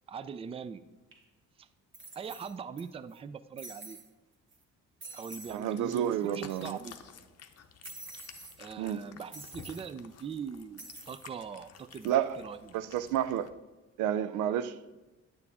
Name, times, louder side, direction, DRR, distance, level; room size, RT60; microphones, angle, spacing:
voice 1, 0.1-0.8 1.6-1.7 2.2-4.0 5.1-7.0 8.6-12.9, right 6 dB, 20° right, 0.3 m, -42 dB
sound 1, 1.1-1.2 1.9-2.8 3.1-3.2 3.6-4.1 4.5-4.6 5.0-5.6 5.9-6.0 6.2-6.9 7.8-8.6 9.3-9.9 10.8-11.3 11.7-12.1, right 2 dB, 40° right, 1.6 m, -48 dB
Cat, 5.3-13.5, left 8 dB, 55° left, 0.7 m, -53 dB
voice 2, 5.5-6.8 8.8-9.0 12.0-12.4 12.7-13.5 14.0-14.8, right 10 dB, 90° right, 0.5 m, -30 dB
9.5 x 6.8 x 3.6 m
cardioid pair, 90°, 30 cm